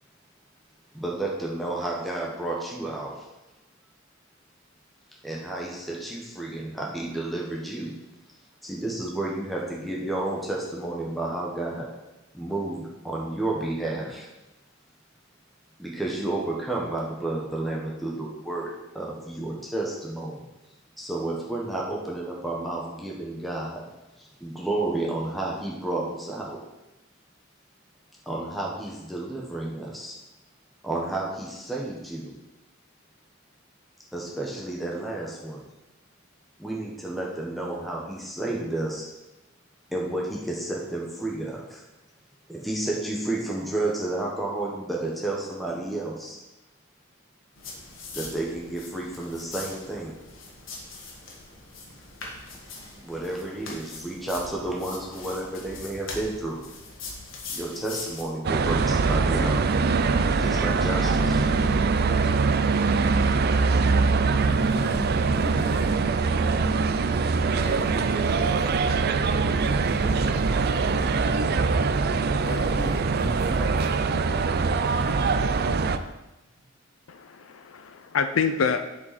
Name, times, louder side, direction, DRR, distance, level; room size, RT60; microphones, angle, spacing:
voice 1, 0.9-3.1 5.2-7.9 8.6-11.9 12.3-14.3 15.8-18.7 18.9-20.4 21.0-23.8 24.2-26.6 28.3-30.1 30.8-32.3 34.1-35.6 36.6-39.0 39.9-41.8 42.5-46.4 48.1-50.1 53.0-56.6 57.5-59.6 60.4-61.7, right 2 dB, ahead, -3 dB, 1.1 m, -31 dB
sound 1, 47.6-58.2, left 3 dB, 70° left, 1.6 m, -41 dB
sound 2, 58.4-76.0, right 4 dB, 50° right, 0.4 m, -23 dB
voice 2, 64.4-66.0 67.5-69.0 69.6-71.2 72.4-74.0, left 1 dB, 20° left, -5 dB, 2.3 m, -37 dB
voice 3, 77.1-78.9, left 6 dB, 90° left, 8 dB, 0.5 m, -27 dB
10.5 x 5.1 x 4.2 m, 1.0 s
head